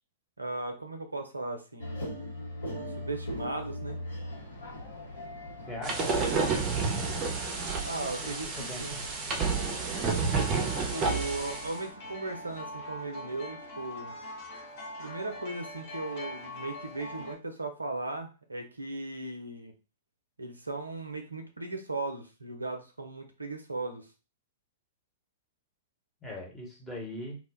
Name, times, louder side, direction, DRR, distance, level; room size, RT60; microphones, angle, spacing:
voice 1, 0.4-2.0 2.8-4.0 7.8-9.0 10.9-14.2 15.0-19.7 20.4-24.1, right 2 dB, 85° right, 5 dB, 0.5 m, -37 dB
sound 1, 1.8-12.8, left 1 dB, 75° left, 1.1 m, -42 dB
voice 2, 5.7-6.3 8.0-9.0 26.2-27.4, left 1 dB, 10° left, -2 dB, 1.0 m, -41 dB
sound 2, 5.8-11.7, right 4 dB, 30° right, 0.7 m, -30 dB
sound 3, 10.3-17.4, left 1 dB, 45° left, 0.8 m, -42 dB
2.4 x 2.1 x 3.4 m, 0.32 s
figure-of-eight pair, 105°, 0 cm